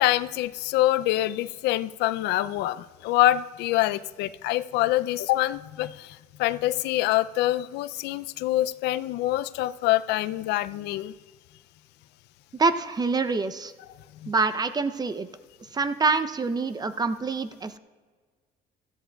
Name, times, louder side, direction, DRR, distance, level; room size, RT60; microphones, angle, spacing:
voice 1, 0.0-11.1 14.2-14.3, left 15 dB, 80° left, 15 dB, 0.4 m, -25 dB
voice 2, 12.6-13.7 14.3-15.3 15.7-17.8, right 4 dB, 25° right, 12 dB, 0.6 m, -26 dB
17.0 x 13.5 x 2.3 m, 1.5 s
cardioid pair, 110°, 17 cm